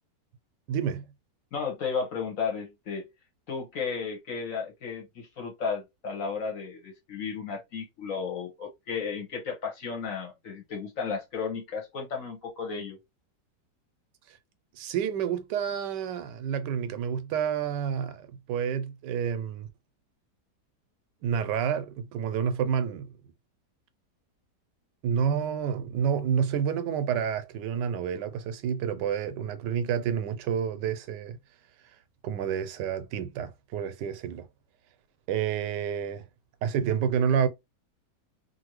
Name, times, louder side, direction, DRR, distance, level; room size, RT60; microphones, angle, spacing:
voice 1, 0.7-1.0 14.7-19.7 21.2-23.1 25.0-31.4 32.2-34.5 35.3-36.2 36.6-37.5, right 8 dB, 80° right, 1.2 m, -29 dB
voice 2, 1.5-3.0 3.5-13.0, left 5 dB, 55° left, 1.3 m, -34 dB
2.9 x 2.6 x 2.9 m
omnidirectional pair, 1.8 m